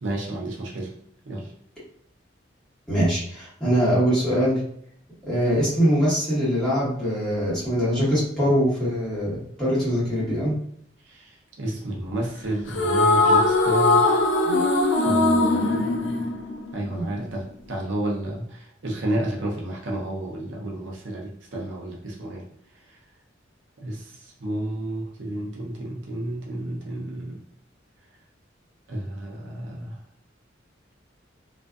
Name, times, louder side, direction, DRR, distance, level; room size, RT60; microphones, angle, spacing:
voice 1, 0.0-0.9 1.2-1.5 11.1-14.0 14.9-16.3 16.7-22.5 23.8-27.4 28.9-30.0, right 1 dB, 75° right, -2 dB, 0.6 m, -31 dB
voice 2, 2.9-4.6 5.3-10.5 14.4-14.6 16.9-17.0, equal, 5° left, -10 dB, 1.3 m, -23 dB
sound 1, 12.7-17.1, left 2 dB, 65° left, 0.4 m, -20 dB
2.5 x 2.4 x 2.3 m, 0.65 s
head